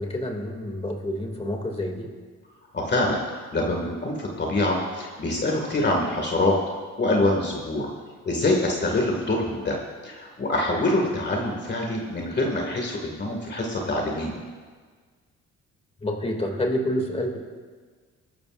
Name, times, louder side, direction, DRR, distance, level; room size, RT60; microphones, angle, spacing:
voice 1, 0.0-2.1 16.0-17.4, left 1 dB, 20° left, 2 dB, 2.5 m, -28 dB
voice 2, 2.7-6.6 7.0-7.9 8.3-9.8 10.0-14.4, left 2 dB, 35° left, 0 dB, 2.1 m, -25 dB
22.5 x 12.5 x 2.6 m, 1.5 s
cardioid pair, 90°, 30 cm